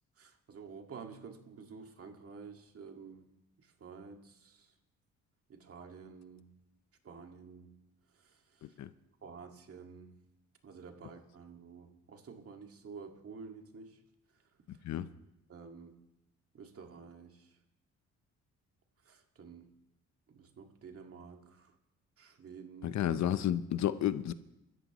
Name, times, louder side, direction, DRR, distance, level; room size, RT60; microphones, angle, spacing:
voice 1, 0.2-3.3 3.6-4.7 5.5-6.5 7.0-7.7 8.1-8.8 9.2-10.2 10.6-14.0 14.7-14.8 15.5-16.0 16.5-17.6 19.0-19.7 20.3-21.7 22.2-23.0, right 5 dB, 50° right, 2.0 m, -50 dB
voice 2, 22.8-24.3, left 11 dB, 65° left, 0.8 m, -31 dB
28.0 x 14.0 x 3.1 m
cardioid pair, 90°, 30 cm